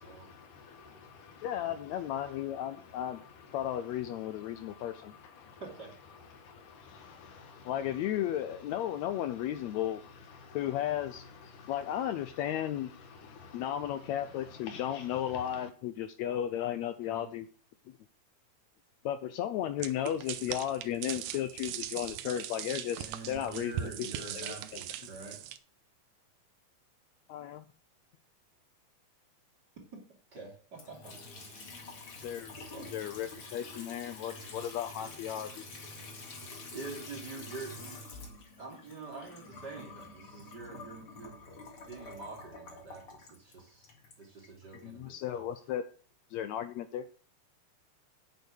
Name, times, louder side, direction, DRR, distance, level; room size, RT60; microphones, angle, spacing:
voice 1, 0.0-15.7, left 5 dB, 70° left, 2.8 m, -52 dB
voice 2, 1.4-3.2 3.5-5.1 7.7-10.0 10.5-11.2 11.7-12.9 13.5-17.5 19.0-24.8 27.3-27.7 32.2-32.5 32.9-35.6 44.8-45.8 46.3-47.0, left 11 dB, 85° left, 1.6 m, -34 dB
sound 1, 19.8-25.6, right 11 dB, 75° right, 1.9 m, -40 dB
voice 3, 23.0-25.4 29.9-30.0 30.3-31.8 32.6-32.9 36.7-38.0 38.6-41.4 41.8-43.9 44.2-45.5, right 4 dB, 30° right, 3.2 m, -46 dB
Water tap faucet / Sink (filling or washing) / Trickle dribble, 30.7-44.8, left 3 dB, 45° left, 2.7 m, -47 dB
9.1 x 8.0 x 6.6 m
omnidirectional pair, 3.9 m